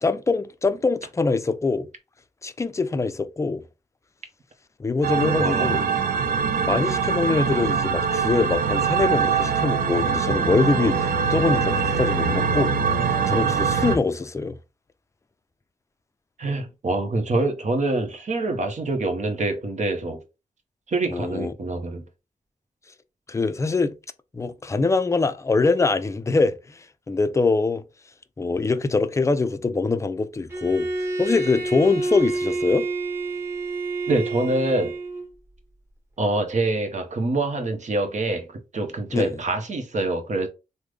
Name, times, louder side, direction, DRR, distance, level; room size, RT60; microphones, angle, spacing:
voice 1, 0.0-1.9 2.4-3.6 4.8-5.8 6.6-12.8 13.3-14.6 21.1-21.5 23.3-23.9 24.3-27.8 28.4-30.9 31.2-32.9 39.1-39.4, left 3 dB, 20° left, 0.4 m, -23 dB
sound 1, 5.0-14.0, right 6 dB, 80° right, 0.4 m, -23 dB
voice 2, 5.4-5.8 16.4-20.2 20.9-22.0 34.1-34.9 36.2-40.5, right 2 dB, 55° right, 0.9 m, -25 dB
Bowed string instrument, 30.5-35.3, right 3 dB, 15° right, 1.2 m, -28 dB
3.5 x 2.1 x 3.2 m
cardioid pair, 70°, 15 cm